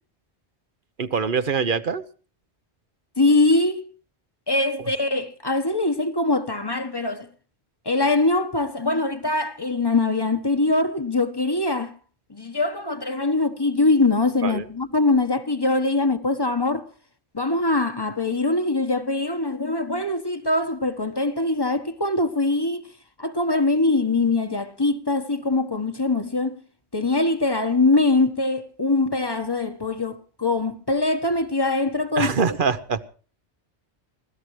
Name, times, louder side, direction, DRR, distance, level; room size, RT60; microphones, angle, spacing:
voice 1, 1.0-2.0 14.4-14.6 32.2-33.0, right 5 dB, 55° right, 1.0 m, -24 dB
voice 2, 3.2-3.9 4.5-7.3 7.8-11.9 12.3-16.8 17.3-22.9 23.2-26.6 26.9-32.3, left 2 dB, 25° left, 1.2 m, -22 dB
25.0 x 16.5 x 3.2 m
omnidirectional pair, 1.1 m